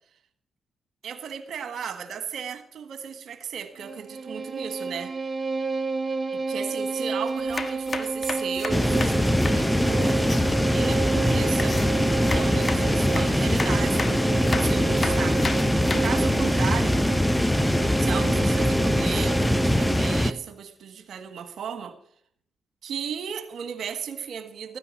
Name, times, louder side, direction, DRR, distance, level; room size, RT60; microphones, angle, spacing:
voice 1, 1.0-5.1 6.3-10.2 10.6-11.8 12.2-15.4 16.0-17.0 18.0-21.9 22.8-24.8, right 7 dB, 70° right, 9 dB, 1.6 m, -35 dB
Bowed string instrument, 3.8-20.4, right 4 dB, 40° right, 1.2 m, -30 dB
sound 1, 7.3-10.4 11.6-16.2, left 3 dB, 40° left, 1.5 m, -34 dB
sound 2, 8.7-20.3, left 1 dB, 10° left, 0.7 m, -23 dB
14.0 x 9.8 x 6.4 m, 0.65 s
supercardioid pair, 50°, 0 cm